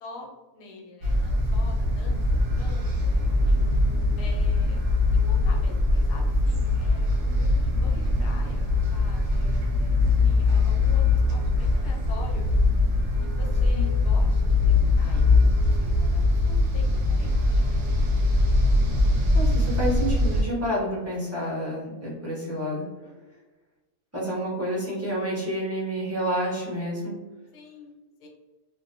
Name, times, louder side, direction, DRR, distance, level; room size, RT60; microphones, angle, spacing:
voice 1, 0.0-3.6 4.2-4.8 5.1-12.5 13.2-15.2 15.6-18.0 23.0-23.4 27.5-28.3, left 3 dB, 90° left, 1 dB, 1.2 m, -45 dB
sound 1, 1.0-20.4, left 2 dB, 65° right, 0.9 m, -22 dB
voice 2, 19.3-22.9 24.1-27.2, equal, 15° right, -7 dB, 0.5 m, -29 dB
2.5 x 2.1 x 2.6 m, 1.2 s
omnidirectional pair, 1.6 m